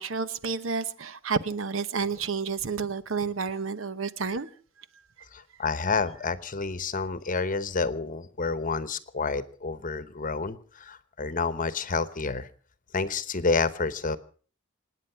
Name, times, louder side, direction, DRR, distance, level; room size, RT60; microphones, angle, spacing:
voice 1, 0.0-4.5, right 5 dB, 70° right, 0.9 m, -30 dB
voice 2, 5.3-12.5 12.9-14.2, left 4 dB, 40° left, 1.0 m, -29 dB
27.0 x 9.5 x 5.7 m
head